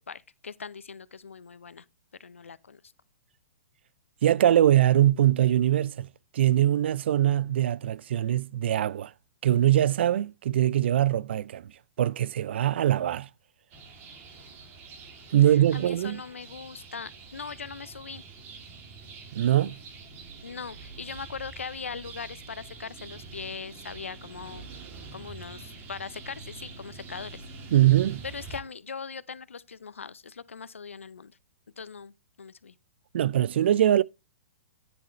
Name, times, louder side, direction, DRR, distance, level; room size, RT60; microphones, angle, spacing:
voice 1, 0.0-1.8 2.2-2.8 15.5-18.2 20.4-24.7 25.1-27.4 28.3-31.3 31.8-32.7, left 5 dB, 80° left, 0.7 m, -40 dB
voice 2, 4.2-6.1 6.3-9.1 9.4-11.7 12.0-13.3 15.3-16.2 19.3-19.8 27.7-28.2 33.1-34.0, right 12 dB, 60° right, 0.4 m, -22 dB
sound 1, 13.7-28.6, right 4 dB, 30° right, 2.6 m, -45 dB
9.8 x 7.5 x 3.1 m
figure-of-eight pair, 115°, 7 cm